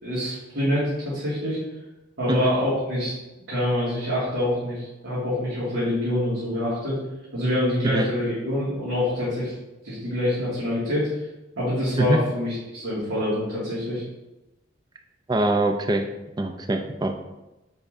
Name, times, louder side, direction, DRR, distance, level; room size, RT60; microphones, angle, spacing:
voice 1, 0.0-1.6 2.2-3.1 3.5-7.0 7.3-9.5 9.8-11.1 11.6-14.0, left 1 dB, 80° right, -10 dB, 2.2 m, -25 dB
voice 2, 15.3-16.0 16.4-17.2, right 2 dB, 20° right, 5 dB, 0.4 m, -23 dB
6.8 x 5.4 x 2.6 m, 1.0 s
head